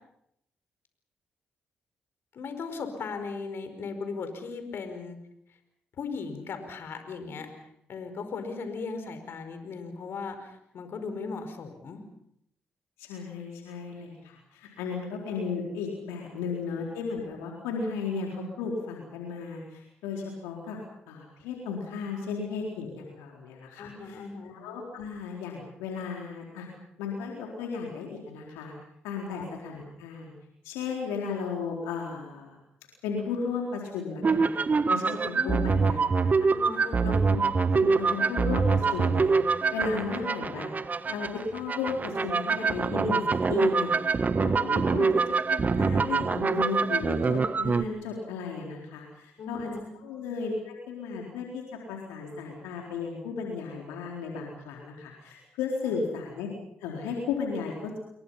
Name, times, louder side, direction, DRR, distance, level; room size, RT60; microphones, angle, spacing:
voice 1, 2.3-5.2 6.0-7.5 7.9-12.0 23.8-24.6 29.3-29.5 35.3-35.8 36.5-37.2 49.4-49.9, left 4 dB, 60° left, 8 dB, 5.0 m, -37 dB
voice 2, 13.0-20.8 21.1-26.7 27.0-28.7 29.0-30.3 30.6-32.6 33.0-36.5 37.0-37.4 37.7-40.7 41.1-43.2 43.5-45.1 45.5-49.7 50.0-56.5 56.8-58.0, left 5 dB, 80° left, 0 dB, 4.2 m, -35 dB
sound 1, 34.2-47.8, right 4 dB, 40° right, 1.3 m, -25 dB
29.0 x 22.5 x 5.8 m, 0.75 s
hypercardioid pair, 45°, 4 cm